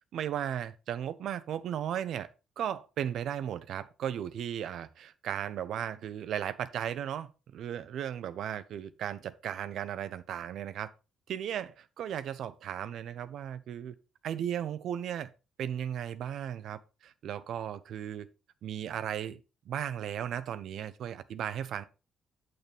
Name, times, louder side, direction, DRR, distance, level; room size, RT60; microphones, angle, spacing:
voice 1, 0.1-2.3 2.6-10.9 11.3-13.9 14.2-15.3 15.6-18.3 18.6-21.8, right 10 dB, 75° right, 0.7 m, -36 dB
7.6 x 6.8 x 3.4 m
cardioid pair, 90°, 0 cm